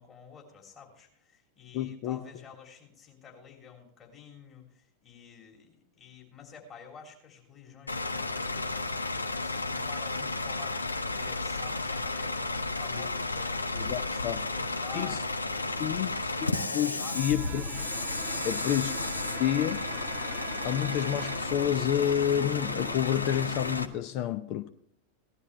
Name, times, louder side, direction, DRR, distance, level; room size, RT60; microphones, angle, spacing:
voice 1, 0.0-16.2 16.5-17.2, left 6 dB, 25° left, 3.4 m, -50 dB
voice 2, 1.7-2.2 12.9-13.0 13.7-14.4 14.9-15.2 15.8-17.9 18.4-19.0 19.4-19.9 20.6-24.7, left 11 dB, 45° left, 0.6 m, -29 dB
Bus / Idling, 7.9-23.8, left 3 dB, 80° left, 0.7 m, -33 dB
Bowed string instrument, 17.0-21.7, right 12 dB, 45° right, 0.6 m, -45 dB
sound 1, 17.4-23.8, right 1 dB, 5° right, 1.1 m, -46 dB
18.0 x 12.0 x 3.4 m
figure-of-eight pair, 90°, 0 cm